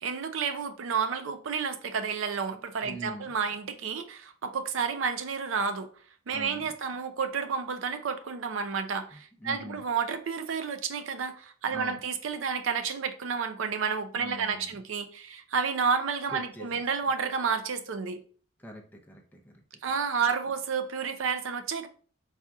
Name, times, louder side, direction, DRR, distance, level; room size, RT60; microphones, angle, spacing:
voice 1, 0.0-5.9 6.3-18.2 19.8-21.9, right 6 dB, 70° right, 0.5 m, -30 dB
voice 2, 2.9-3.3 6.3-6.7 9.4-9.8 11.7-12.0 14.2-14.7 16.3-16.8 18.6-19.6, equal, 10° left, 0.6 m, -43 dB
4.2 x 2.4 x 3.5 m
head